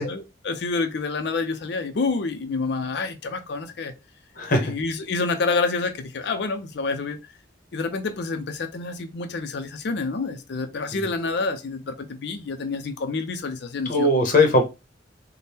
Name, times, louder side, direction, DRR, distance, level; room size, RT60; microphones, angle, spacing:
voice 1, 0.0-3.9 4.6-7.2 7.7-14.1, left 3 dB, 65° left, 0.5 m, -28 dB
voice 2, 4.4-4.7 10.9-11.0 13.8-14.6, left 2 dB, 50° left, 0.8 m, -19 dB
4.2 x 2.1 x 3.4 m
head